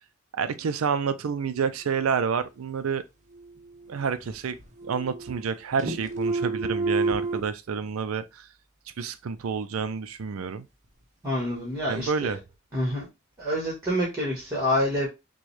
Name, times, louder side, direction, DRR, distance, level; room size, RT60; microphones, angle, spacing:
voice 1, 0.3-3.0 3.9-4.6 4.8-8.5 9.0-10.7 11.9-12.4, right 6 dB, 90° right, 0.4 m, -29 dB
sound 1, 3.3-4.3 4.6-5.5 5.8-7.4, right 3 dB, 35° right, 0.8 m, -30 dB
voice 2, 11.2-12.3 12.7-13.1 13.4-15.1, equal, 15° right, 1.5 m, -27 dB
6.1 x 2.3 x 3.2 m
head